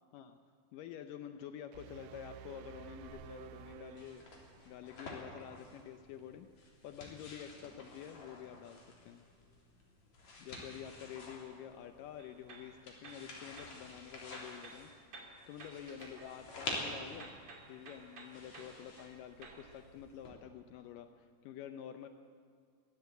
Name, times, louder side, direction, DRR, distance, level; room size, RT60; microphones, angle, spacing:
voice 1, 0.7-4.2 4.6-9.2 10.4-14.9 15.5-17.3 17.7-22.1, left 9 dB, 90° left, 8 dB, 1.9 m, -49 dB
sound 1, 1.7-4.9, right 10 dB, 80° right, 2.0 m, -52 dB
sound 2, 3.1-20.3, left 2 dB, 45° left, 4.4 m, -49 dB
sound 3, 12.2-13.8 14.2-16.9 17.2-19.6, right 3 dB, 40° right, 2.8 m, -55 dB
22.5 x 15.5 x 8.0 m, 2.2 s
omnidirectional pair, 4.8 m